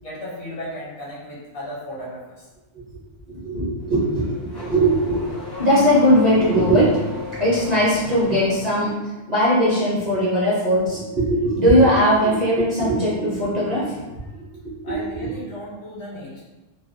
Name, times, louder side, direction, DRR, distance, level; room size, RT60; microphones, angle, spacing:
voice 1, 0.0-2.5 10.2-10.3 14.2-14.3 14.8-16.4, equal, 65° left, -6 dB, 1.2 m, -35 dB
voice 2, 3.4-5.2 5.6-7.0 7.4-8.9 9.3-14.0 14.9-15.0, equal, 40° right, -9 dB, 0.7 m, -19 dB
Car / Accelerating revving vroom, 3.8-8.8, left 1 dB, 35° left, 0.4 m, -35 dB
2.5 x 2.1 x 2.5 m, 1.1 s
omnidirectional pair, 1.3 m